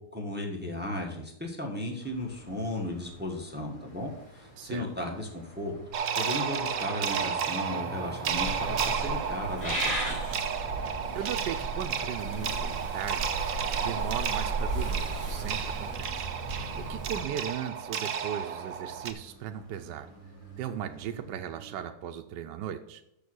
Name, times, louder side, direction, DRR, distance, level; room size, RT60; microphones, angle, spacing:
voice 1, 0.1-5.8 6.2-10.2, left 1 dB, 5° right, 1 dB, 1.2 m, -35 dB
sound 1, 2.0-21.8, right 2 dB, 40° left, 3.1 m, -50 dB
voice 2, 4.6-4.9 11.1-13.4 13.8-16.3 16.8-20.1 20.6-23.0, right 9 dB, 80° right, 6 dB, 1.2 m, -37 dB
sound 2, 5.9-19.1, right 7 dB, 60° right, 1.0 m, -32 dB
Purr / Meow, 8.3-17.2, right 2 dB, 65° left, 4.9 m, -35 dB
6.9 x 6.4 x 6.3 m, 0.79 s
omnidirectional pair, 1.9 m